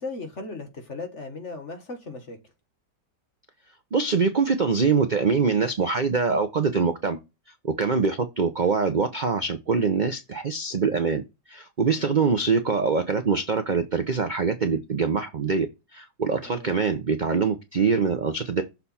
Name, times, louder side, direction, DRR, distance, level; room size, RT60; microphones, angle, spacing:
voice 1, 0.0-2.4 12.0-12.1 16.4-16.7, left 3 dB, 45° left, 1.7 m, -37 dB
voice 2, 3.9-7.2 7.6-11.2 11.5-15.7 15.9-18.6, right 5 dB, 50° right, 0.5 m, -24 dB
6.8 x 4.4 x 4.2 m
omnidirectional pair, 1.8 m